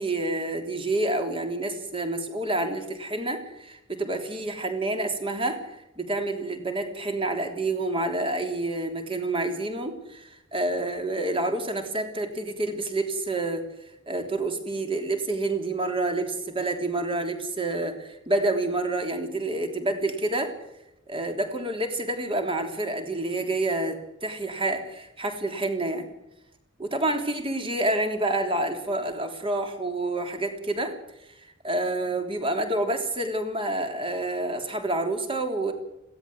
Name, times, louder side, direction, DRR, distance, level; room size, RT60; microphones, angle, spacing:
voice 1, 0.0-13.6 14.1-20.5 21.1-26.1 26.8-30.9 31.4-35.7, right 2 dB, 25° right, 5 dB, 3.3 m, -28 dB
21.5 x 17.0 x 7.9 m, 0.87 s
head